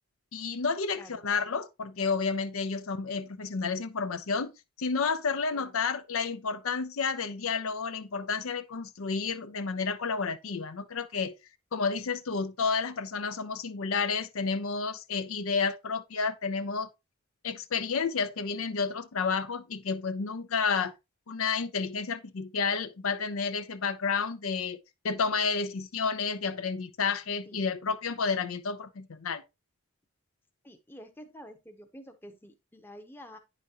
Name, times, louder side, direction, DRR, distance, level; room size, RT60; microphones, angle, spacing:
voice 1, 0.3-4.5 4.8-11.3 11.7-16.9 17.4-20.9 21.3-24.8 25.0-29.4, left 5 dB, 80° left, 0.6 m, -31 dB
voice 2, 30.6-33.4, equal, 10° left, 0.7 m, -49 dB
9.6 x 5.1 x 2.8 m
head